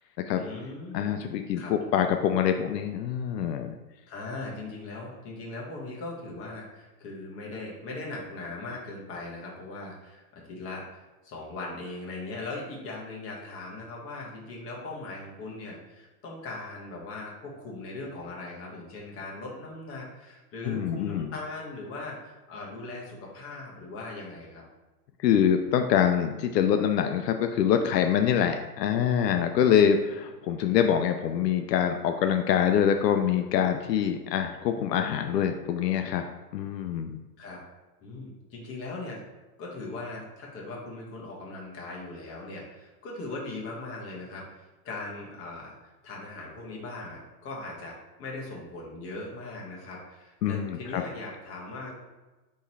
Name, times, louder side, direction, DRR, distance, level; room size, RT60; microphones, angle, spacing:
voice 1, 0.3-1.2 1.5-1.7 4.1-10.8 11.2-24.6 37.4-37.6 38.0-39.2 39.6-51.9, left 2 dB, 25° left, -3 dB, 1.2 m, -39 dB
voice 2, 0.9-3.7 20.7-21.3 25.2-36.2 36.5-37.2 50.4-51.0, left 8 dB, 80° left, 6 dB, 0.5 m, -25 dB
3.7 x 3.1 x 4.1 m, 1.1 s
hypercardioid pair, 130°, 49 cm